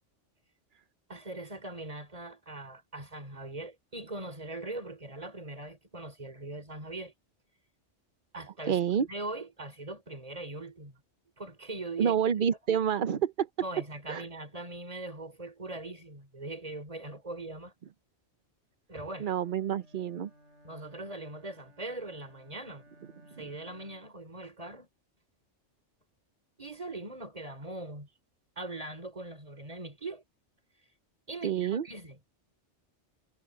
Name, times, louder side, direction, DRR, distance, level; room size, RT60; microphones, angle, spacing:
voice 1, 1.1-7.1 8.3-8.8 9.1-11.0 11.4-12.2 13.6-17.7 18.9-19.3 20.6-22.9 23.4-24.9 26.6-28.1 28.6-30.2 31.3-32.2, right 2 dB, 30° right, 3.6 m, -41 dB
voice 2, 8.6-9.1 12.0-13.5 14.1-14.2 19.2-20.3 23.4-23.5 31.4-31.8, right 8 dB, 50° right, 0.7 m, -28 dB
Bowed string instrument, 19.0-24.3, right 1 dB, 70° left, 6.6 m, -59 dB
omnidirectional pair, 1.2 m